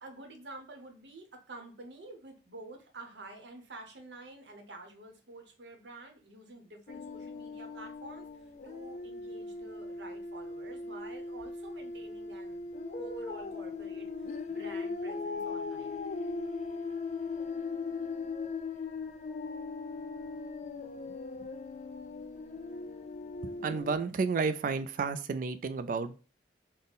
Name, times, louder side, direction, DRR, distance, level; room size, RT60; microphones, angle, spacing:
voice 1, 0.0-12.6 12.9-16.0, right 2 dB, 70° right, 3 dB, 0.8 m, -49 dB
sound 1, 6.9-24.0, left 4 dB, 40° left, 0.3 m, -39 dB
voice 2, 21.1-21.5 23.6-26.2, right 4 dB, 45° right, 11 dB, 0.3 m, -32 dB
4.0 x 2.1 x 3.5 m, 0.36 s
head